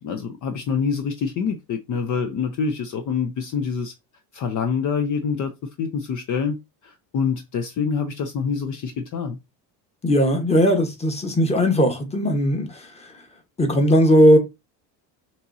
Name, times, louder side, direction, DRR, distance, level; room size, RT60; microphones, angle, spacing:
voice 1, 0.0-3.9 4.3-6.6 6.8-9.4, left 6 dB, 45° left, 0.7 m, -26 dB
voice 2, 10.0-13.1 13.6-14.4, equal, 15° left, 1.3 m, -18 dB
6.4 x 3.1 x 2.7 m
cardioid pair, 125°, 44 cm